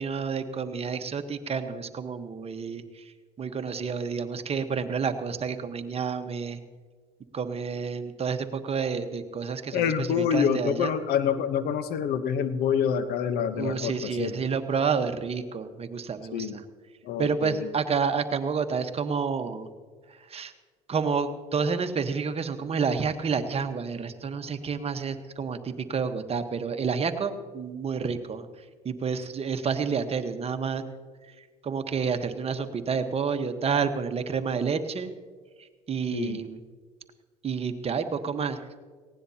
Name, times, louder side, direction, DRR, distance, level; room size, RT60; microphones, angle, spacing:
voice 1, 0.0-3.1 3.4-6.6 7.3-10.9 13.5-16.6 17.2-19.7 20.1-20.5 20.9-28.5 28.8-30.8 31.6-35.1 35.9-36.6 37.4-38.7, right 5 dB, 35° right, 8 dB, 1.2 m, -29 dB
voice 2, 9.7-14.3 16.3-16.6 17.0-17.7 36.1-36.4, left 8 dB, 60° left, 11 dB, 1.0 m, -27 dB
18.5 x 17.0 x 2.9 m, 1.5 s
hypercardioid pair, 70°, 18 cm